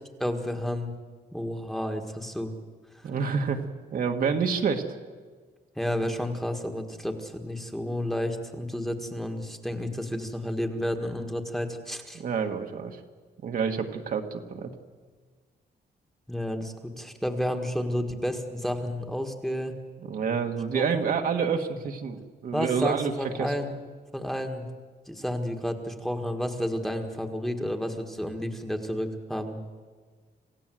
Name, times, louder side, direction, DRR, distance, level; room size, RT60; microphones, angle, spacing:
voice 1, 0.2-0.9 1.3-2.5 2.9-3.1 5.8-12.2 16.3-19.8 20.7-21.0 22.5-23.7 24.1-24.7 25.1-29.6, equal, ahead, 4 dB, 1.6 m, -31 dB
voice 2, 3.0-3.6 3.9-4.9 12.1-13.0 13.4-14.7 20.1-23.6, right 6 dB, 55° right, 4 dB, 1.7 m, -28 dB
27.0 x 16.5 x 7.7 m, 1.5 s
wide cardioid pair, 170°, 17 cm